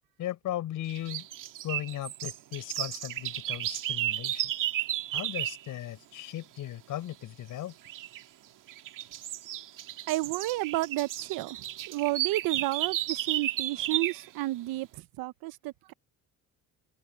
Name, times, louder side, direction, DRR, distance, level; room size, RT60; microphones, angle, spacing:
voice 1, 0.2-1.3 1.6-4.4 5.1-7.7, left 13 dB, 60° left, 4.8 m, -37 dB
sound 1, 0.9-5.6 7.8-8.2 8.7-14.2, right 13 dB, 60° right, 1.9 m, -33 dB
voice 2, 10.1-11.6 11.9-14.9 15.2-15.9, right 19 dB, 80° right, 0.8 m, -31 dB
cardioid pair, 165°, 36 cm